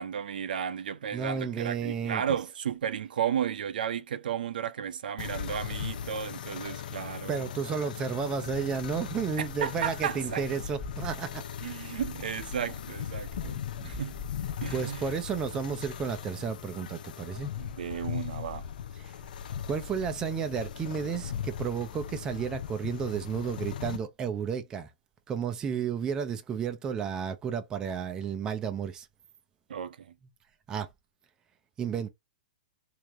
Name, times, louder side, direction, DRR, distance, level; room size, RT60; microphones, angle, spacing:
voice 1, 0.0-7.3 9.4-10.4 11.6-14.2 14.6-15.0 17.6-18.6 29.7-30.1, right 8 dB, 75° right, 0.6 m, -33 dB
voice 2, 1.1-2.2 7.3-11.4 13.8-13.9 14.7-17.5 19.0-19.1 19.7-24.9 25.3-29.1 30.7-30.9 31.8-32.1, right 6 dB, 15° right, 0.5 m, -32 dB
sound 1, 5.2-24.0, left 9 dB, 65° left, 0.5 m, -39 dB
sound 2, 8.8-23.5, left 3 dB, 15° left, 1.0 m, -50 dB
3.2 x 2.8 x 3.5 m
hypercardioid pair, 160°, 5 cm